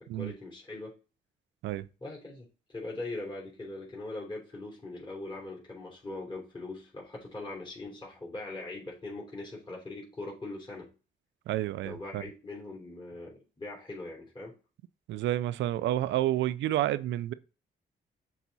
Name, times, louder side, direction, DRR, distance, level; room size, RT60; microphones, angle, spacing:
voice 1, 0.1-1.0 2.0-10.9 11.8-14.5, left 2 dB, 25° left, 3.3 m, -41 dB
voice 2, 11.5-12.2 15.1-17.3, right 13 dB, 90° right, 0.4 m, -29 dB
7.2 x 4.1 x 4.1 m
cardioid pair, 70°, 19 cm